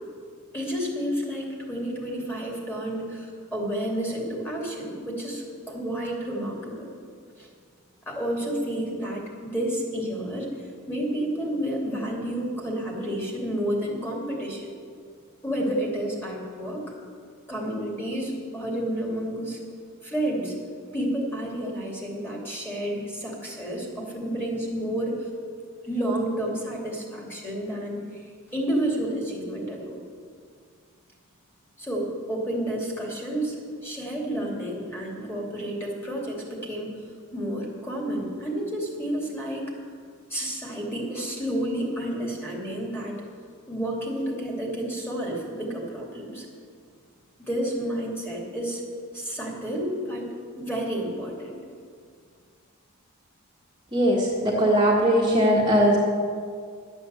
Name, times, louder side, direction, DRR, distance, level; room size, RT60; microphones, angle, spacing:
voice 1, 0.5-6.9 7.4-7.5 8.1-10.5 10.9-14.7 15.4-16.8 17.5-19.6 20.0-20.5 20.9-25.3 25.8-30.0 31.8-33.6 33.8-36.9 37.3-39.6 40.3-43.2 43.7-46.5 47.4-48.8 49.1-50.2 50.6-51.6, right 1 dB, 10° left, -2 dB, 2.6 m, -30 dB
voice 2, 53.9-56.0, equal, 20° right, -5 dB, 1.5 m, -20 dB
11.5 x 8.0 x 7.9 m, 2.1 s
head